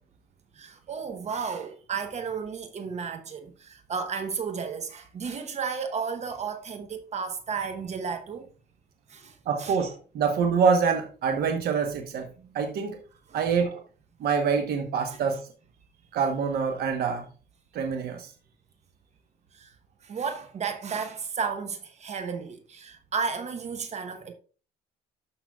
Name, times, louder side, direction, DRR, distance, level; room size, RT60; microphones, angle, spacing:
voice 1, 0.6-8.5 9.1-9.8 12.4-12.5 13.3-13.4 19.5-19.7 20.0-24.3, right 5 dB, 40° right, 1.0 m, -33 dB
voice 2, 9.5-12.3 12.5-13.0 13.3-13.8 14.2-15.4 16.1-17.2 17.7-18.3, right 6 dB, 65° right, 1.1 m, -25 dB
12.0 x 5.8 x 2.3 m
cardioid pair, 110°, 17 cm